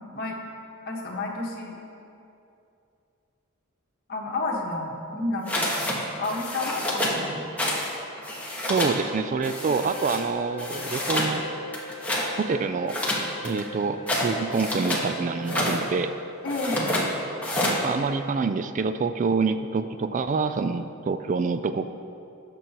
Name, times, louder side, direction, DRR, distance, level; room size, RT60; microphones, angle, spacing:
voice 1, 0.9-1.8 4.1-5.7 5.9-7.6 16.4-17.0, left 2 dB, 50° left, -1 dB, 1.5 m, -31 dB
sound 1, 5.5-6.0 6.2-7.2 7.6-7.9 8.2-9.0 9.4-10.2 10.6-11.3 11.7-12.3 12.9-15.1 15.4-15.8 16.5-17.1 17.4-17.8, left 1 dB, 5° left, 1.4 m, -28 dB
voice 2, 8.7-11.4 12.4-13.0 13.4-16.1 17.8-21.9, right 4 dB, 35° right, 10 dB, 0.3 m, -26 dB
sound 2, 9.2-16.8, left 1 dB, 20° right, 1.9 m, -41 dB
18.5 x 6.9 x 3.0 m, 2.6 s
head